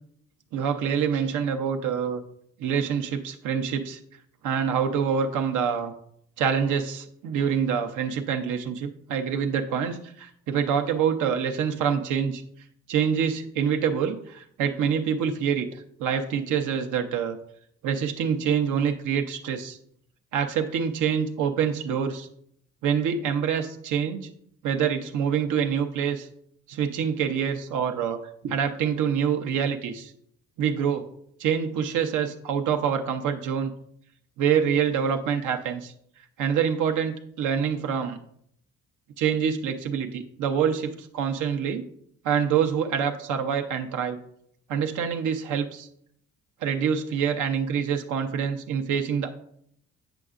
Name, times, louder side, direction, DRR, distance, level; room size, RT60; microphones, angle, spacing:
voice 1, 0.5-2.2 2.6-4.0 4.4-5.9 6.4-12.4 12.9-15.7 16.0-17.4 17.8-19.8 20.3-22.3 22.8-24.3 24.6-26.3 26.7-30.1 30.6-31.1 31.4-33.7 34.4-35.9 36.4-38.2 39.2-41.9 42.2-44.2 44.7-45.9 46.6-49.3, right 7 dB, 80° right, 5 dB, 0.7 m, -26 dB
7.9 x 6.8 x 2.4 m, 0.69 s
cardioid pair, 90°, 30 cm